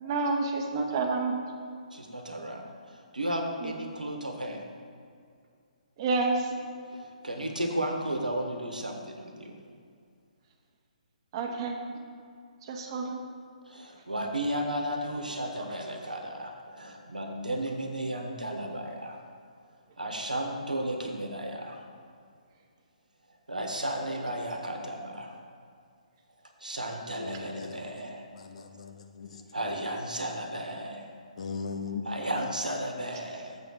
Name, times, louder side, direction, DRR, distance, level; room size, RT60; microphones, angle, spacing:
voice 1, 0.0-1.4 3.6-3.7 6.0-6.5 11.3-11.8 12.7-13.2, right 3 dB, 35° right, 1.1 m, -29 dB
voice 2, 1.9-4.6 6.9-9.6 13.6-19.2 20.0-21.8 23.5-25.3 26.6-28.3 29.5-31.1 31.9-33.6, right 1 dB, 85° right, 1.3 m, -34 dB
voice 3, 27.2-27.8 28.4-29.4 31.4-32.1, left 5 dB, 55° left, 0.8 m, -38 dB
7.4 x 4.8 x 7.2 m
figure-of-eight pair, 135°, 4 cm